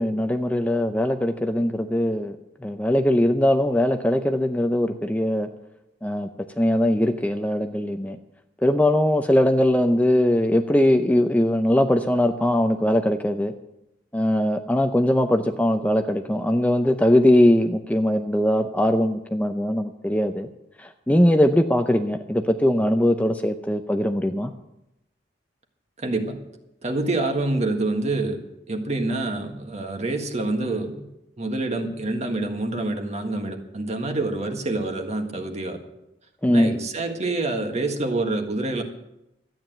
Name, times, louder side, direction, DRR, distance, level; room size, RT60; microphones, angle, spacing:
voice 1, 0.0-2.4 2.6-5.5 6.0-6.3 6.6-8.2 8.6-13.5 14.1-20.5 20.8-24.5 36.4-36.8, left 1 dB, 10° left, 6 dB, 0.6 m, -21 dB
voice 2, 26.0-26.4 26.8-28.4 28.7-31.1 31.4-35.8 36.5-38.8, right 2 dB, 40° right, 4 dB, 1.7 m, -26 dB
13.0 x 9.1 x 7.7 m, 0.88 s
head